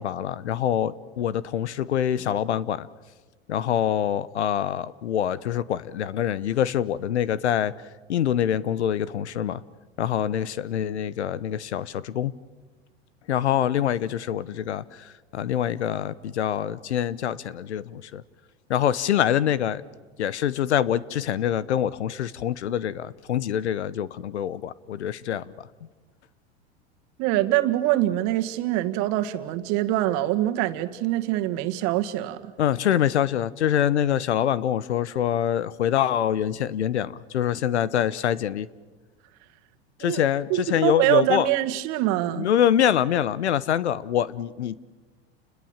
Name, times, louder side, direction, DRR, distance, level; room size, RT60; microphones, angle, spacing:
voice 1, 0.0-2.9 3.5-7.7 8.1-9.6 10.0-12.3 13.3-14.8 15.3-18.2 18.7-19.8 20.2-25.4 32.6-38.7 40.0-41.5 42.4-44.8, left 10 dB, 90° left, 0.9 m, -25 dB
voice 2, 27.2-32.5 40.0-40.2 40.5-42.5, right 15 dB, 55° right, 1.9 m, -24 dB
29.5 x 21.0 x 7.3 m
hypercardioid pair, 100°, 33 cm